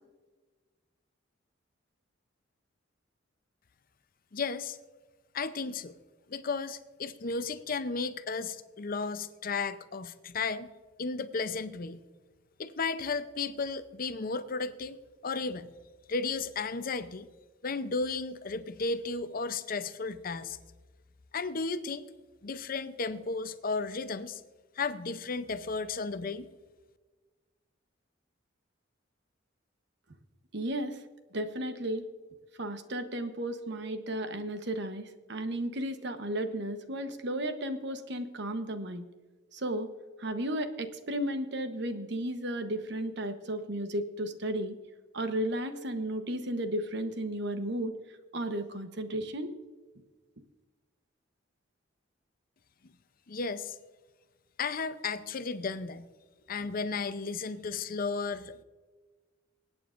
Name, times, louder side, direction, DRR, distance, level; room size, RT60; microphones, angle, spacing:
voice 1, 4.3-4.8 5.3-5.9 6.3-10.7 11.0-12.0 12.6-15.0 15.2-15.7 16.1-17.3 17.6-20.6 21.3-22.1 22.4-24.4 24.8-26.5 53.3-53.8 54.6-56.1 56.5-58.6, left 4 dB, 50° left, 12 dB, 0.6 m, -34 dB
voice 2, 30.5-31.0 31.3-32.0 32.6-39.0 39.5-39.9 40.2-44.8 45.1-47.9 48.3-49.5, right 1 dB, 60° right, 8 dB, 1.0 m, -34 dB
25.5 x 8.8 x 2.5 m, 1.3 s
head